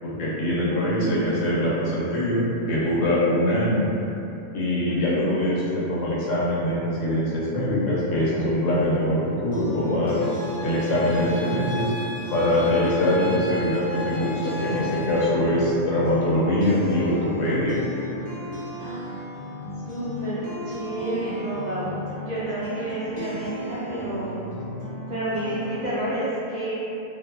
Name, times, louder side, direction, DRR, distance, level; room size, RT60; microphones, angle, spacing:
voice 1, 0.0-3.9 4.5-10.2 10.6-11.9 12.3-17.8, left 1 dB, 85° left, -7 dB, 1.0 m, -23 dB
voice 2, 0.7-1.8 4.9-5.2 18.8-19.1 19.9-20.4 20.7-24.4 25.1-26.7, right 1 dB, 55° right, -12 dB, 0.5 m, -30 dB
sound 1, 9.2-26.2, equal, 55° left, 0.8 m, -35 dB
sound 2, 10.2-15.2, left 3 dB, 5° right, 0.5 m, -35 dB
2.5 x 2.3 x 2.4 m, 2.9 s
omnidirectional pair, 1.3 m